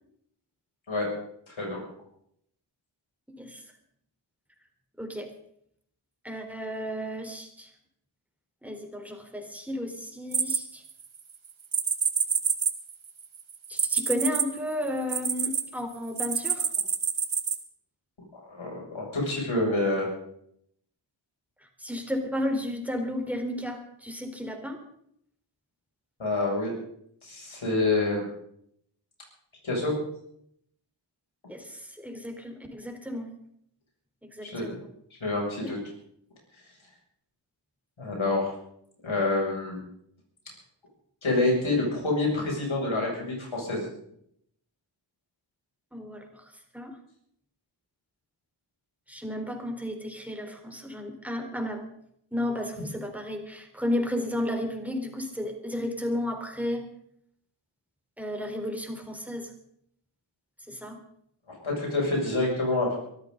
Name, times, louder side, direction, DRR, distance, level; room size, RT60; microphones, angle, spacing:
voice 1, 1.5-1.8 18.5-20.1 26.2-26.7 27.2-28.3 29.6-30.0 34.4-34.8 35.1-35.8 38.0-38.5 39.0-39.8 41.2-43.9 61.6-63.0, left 2 dB, 90° left, -2 dB, 7.2 m, -27 dB
voice 2, 5.0-5.3 6.2-7.7 8.6-10.8 13.7-16.7 21.6-24.8 31.5-33.3 34.2-34.8 35.6-35.8 45.9-47.0 49.1-51.8 52.3-56.8 58.2-59.5 60.7-61.0, left 1 dB, 5° right, 3 dB, 4.1 m, -33 dB
sound 1, 10.3-11.2 11.7-15.6 16.2-17.6, right 6 dB, 85° right, 1.4 m, -27 dB
24.0 x 14.0 x 4.0 m, 0.70 s
cardioid pair, 45°, 46 cm